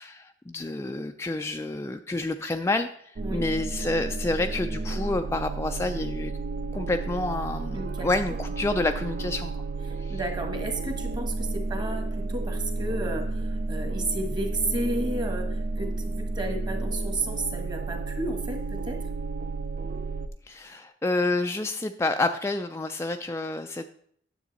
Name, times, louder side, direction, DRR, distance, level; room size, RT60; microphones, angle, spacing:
voice 1, 0.0-6.3 6.7-9.5 10.0-10.2 20.5-23.9, left 2 dB, 15° left, 6 dB, 0.3 m, -29 dB
sound 1, 3.2-20.3, right 3 dB, 50° right, 0.5 m, -31 dB
voice 2, 7.7-8.1 9.9-19.1, right 2 dB, 25° right, 5 dB, 1.4 m, -33 dB
9.9 x 7.1 x 4.1 m, 0.64 s
head